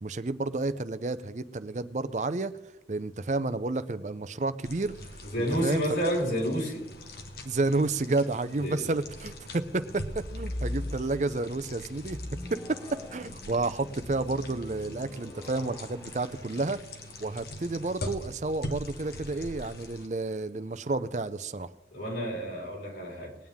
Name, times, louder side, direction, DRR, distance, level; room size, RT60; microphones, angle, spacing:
voice 1, 0.0-2.6 2.9-5.1 5.6-5.8 7.4-12.2 12.5-16.8 17.2-21.7, right 3 dB, 40° right, 12 dB, 0.5 m, -31 dB
sound 1, 4.6-20.1, left 1 dB, 60° left, 1.4 m, -43 dB
voice 2, 5.2-6.8 8.5-8.9 21.9-23.4, equal, 80° left, -3 dB, 5.0 m, -30 dB
sound 2, 10.0-11.5 11.9-17.4 19.0-19.3, left 1 dB, 20° left, 2.9 m, -40 dB
21.0 x 9.2 x 3.6 m, 0.90 s
head